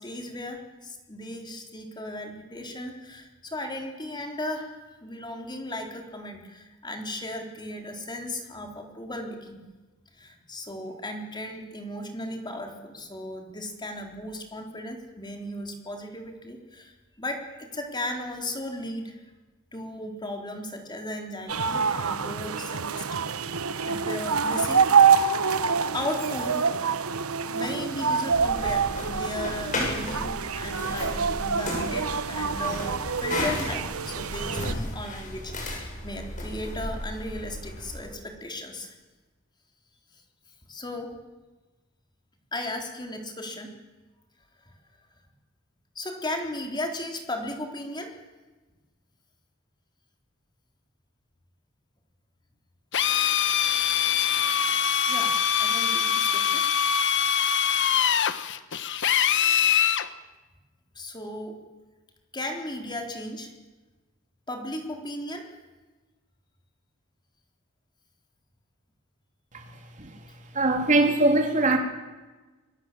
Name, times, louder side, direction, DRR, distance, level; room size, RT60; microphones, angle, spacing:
voice 1, 0.0-9.6 10.1-19.2 19.7-23.2 23.9-25.2 25.9-26.7 27.5-39.0 40.1-40.2 40.7-41.2 42.5-43.7 44.6-44.7 46.0-48.2 55.1-56.6 61.0-61.6 62.3-63.5 64.5-65.5, left 1 dB, 20° left, 3.9 m, -36 dB
sound 1, 21.5-34.7, right 6 dB, 85° right, 1.1 m, -26 dB
sound 2, 28.3-38.0, left 1 dB, 35° left, 7.4 m, -34 dB
Drill, 52.9-60.1, left 8 dB, 60° left, 1.2 m, -23 dB
voice 2, 70.5-71.8, right 2 dB, 35° right, 3.6 m, -21 dB
27.0 x 24.0 x 7.7 m
head